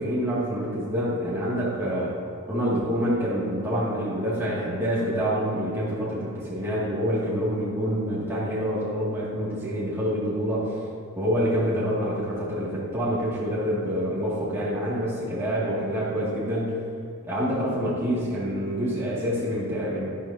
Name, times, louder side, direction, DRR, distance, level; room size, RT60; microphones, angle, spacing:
voice 1, 0.0-2.1 2.5-10.7 11.2-16.8 17.2-20.0, equal, 10° right, -9 dB, 2.2 m, -27 dB
12.0 x 11.0 x 2.8 m, 2.3 s
head